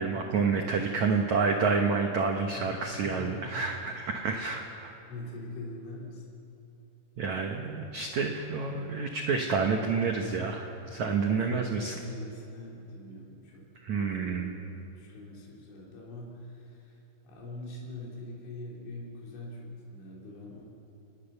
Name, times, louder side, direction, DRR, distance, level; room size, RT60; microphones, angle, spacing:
voice 1, 0.0-4.9 7.2-11.9 13.8-14.5, right 5 dB, 85° right, 3 dB, 1.6 m, -29 dB
voice 2, 0.8-1.1 2.5-2.7 3.0-3.7 5.1-6.4 10.8-20.7, left 2 dB, 90° left, -3 dB, 5.7 m, -43 dB
28.5 x 19.5 x 6.9 m, 2.9 s
omnidirectional pair, 5.2 m